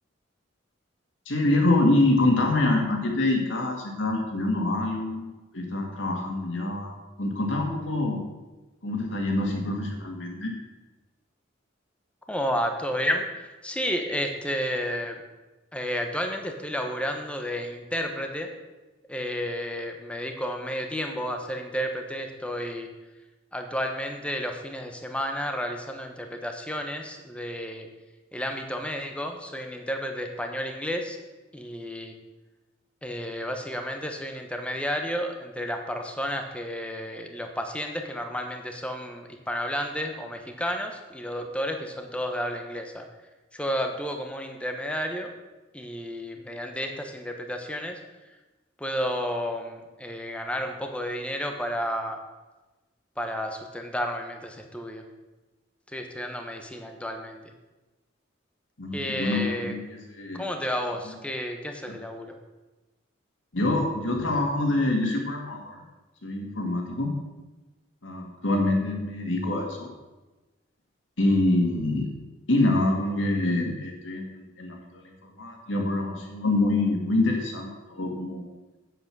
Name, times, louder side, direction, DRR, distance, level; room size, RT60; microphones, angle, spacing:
voice 1, 1.3-8.2 8.8-10.5 58.8-59.8 60.1-60.4 63.5-65.8 66.2-67.1 68.0-69.9 71.2-72.1 72.5-78.4, left 2 dB, 75° left, 1 dB, 2.3 m, -25 dB
voice 2, 12.3-15.2 15.7-18.5 19.1-22.9 23.5-27.9 28.3-31.2 31.5-32.1 33.0-43.0 43.5-45.3 45.7-48.0 48.8-52.2 53.2-55.0 55.9-57.4 58.9-59.8 60.3-62.3, equal, 5° left, 4 dB, 1.1 m, -31 dB
8.2 x 8.0 x 6.2 m, 1.1 s
head